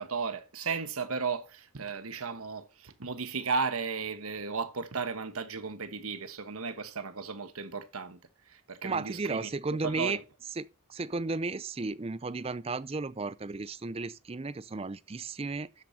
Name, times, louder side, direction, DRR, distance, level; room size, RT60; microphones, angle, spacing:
voice 1, 0.0-8.2 8.5-9.5 9.8-10.2, right 5 dB, 75° right, 1.3 m, -35 dB
voice 2, 8.8-10.2 10.6-15.8, right 3 dB, 25° right, 0.4 m, -34 dB
12.5 x 8.5 x 2.8 m
head